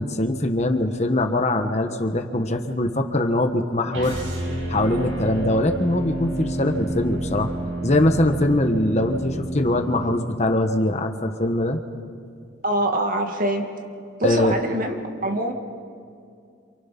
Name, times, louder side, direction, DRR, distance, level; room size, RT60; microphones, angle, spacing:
voice 1, 0.0-4.2 4.7-7.5 7.8-11.8 14.2-14.6, left 1 dB, 35° left, 5 dB, 1.2 m, -22 dB
sound 1, 3.9-10.1, right 1 dB, 70° right, 8.0 m, -29 dB
voice 2, 12.6-13.7 14.2-15.0 15.2-15.5, right 1 dB, 45° right, 3 dB, 2.0 m, -24 dB
28.0 x 27.5 x 6.0 m, 2.3 s
head